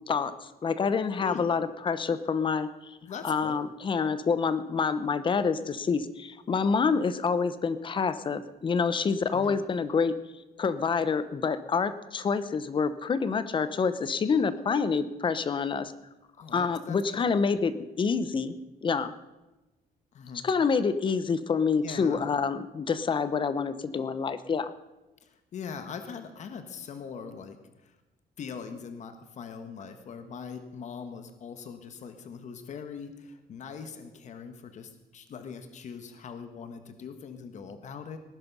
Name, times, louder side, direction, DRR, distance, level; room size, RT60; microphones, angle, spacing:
voice 1, 0.1-3.0 3.2-10.1 10.6-15.9 16.5-18.6 18.8-19.1 20.4-24.7, left 5 dB, 30° left, 14 dB, 0.8 m, -27 dB
voice 2, 1.2-1.5 3.0-3.6 9.3-9.6 16.4-17.3 20.1-20.5 21.8-22.2 25.2-28.0 28.4-38.2, left 6 dB, 50° left, 8 dB, 1.4 m, -41 dB
19.0 x 11.0 x 5.5 m, 1.0 s
cardioid pair, 150°, 16 cm